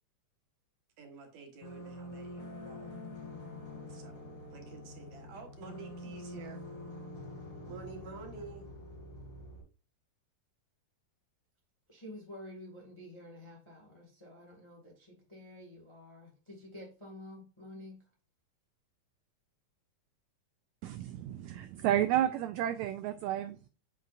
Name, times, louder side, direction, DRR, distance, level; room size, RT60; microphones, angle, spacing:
voice 1, 1.0-2.9 3.9-4.2 4.5-6.6 7.7-8.7, right 4 dB, 65° right, 2.6 m, -49 dB
sound 1, 1.6-9.6, left 1 dB, 45° left, 3.0 m, -46 dB
voice 2, 11.9-18.0, left 1 dB, 10° left, 1.4 m, -50 dB
voice 3, 20.8-23.7, right 12 dB, 85° right, 1.6 m, -31 dB
8.2 x 5.9 x 2.5 m
omnidirectional pair, 3.7 m